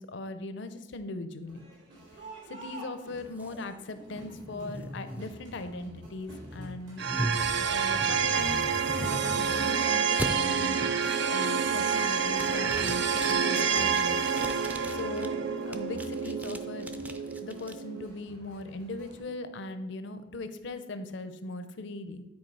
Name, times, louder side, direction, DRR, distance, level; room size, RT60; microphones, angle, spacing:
voice 1, 0.0-1.7 2.5-7.0 7.7-14.2 14.9-15.4 15.7-16.9 17.3-22.2, left 2 dB, 65° left, 10 dB, 0.6 m, -39 dB
Crowd, 1.4-19.2, equal, 80° right, 2.8 m, -49 dB
sound 1, 3.4-9.7 10.2-10.3 10.8-11.1 11.5-12.0 12.3-15.3 15.7-17.7, right 1 dB, 10° right, 0.5 m, -39 dB
sound 2, 7.0-18.1, right 6 dB, 65° right, 0.5 m, -28 dB
9.5 x 4.6 x 4.6 m, 1.1 s
head